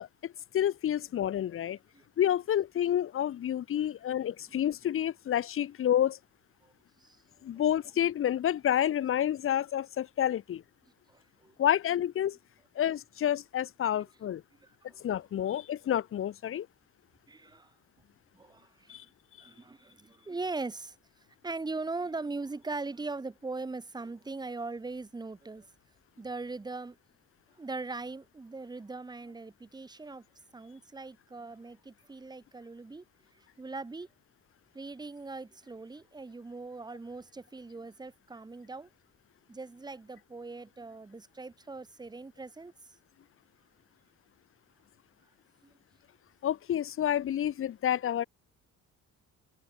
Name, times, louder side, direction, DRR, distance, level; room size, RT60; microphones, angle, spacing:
voice 1, 0.0-1.8 2.2-6.2 7.4-10.6 11.6-12.4 12.7-14.4 15.0-16.7 18.9-19.0 46.4-48.2, left 10 dB, 40° left, 1.4 m, -29 dB
voice 2, 11.1-11.5 13.9-14.0 14.6-15.0 17.3-17.7 18.3-19.0 19.4-21.0 21.4-25.7 26.2-27.0 27.6-30.2 30.5-33.0 33.6-34.1 34.7-38.9 39.5-42.9 45.6-45.7, right 3 dB, 10° right, 3.2 m, -40 dB
cardioid pair, 175°, 33 cm